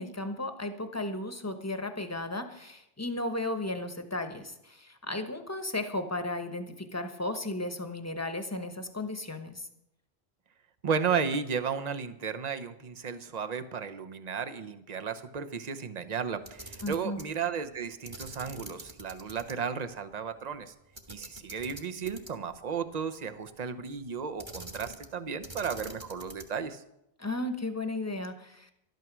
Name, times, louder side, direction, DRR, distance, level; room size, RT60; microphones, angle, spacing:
voice 1, 0.0-9.7 16.8-17.2 27.2-28.7, left 2 dB, 15° left, 7 dB, 1.1 m, -35 dB
voice 2, 10.8-20.7 21.1-26.8, right 6 dB, 40° right, 9 dB, 0.9 m, -34 dB
Camera, 16.4-17.3 18.1-19.5 19.9-20.0 21.0-22.6 24.4-25.2 25.4-26.6, right 2 dB, 25° right, 1.5 m, -45 dB
12.5 x 12.0 x 6.1 m, 0.83 s
omnidirectional pair, 1.1 m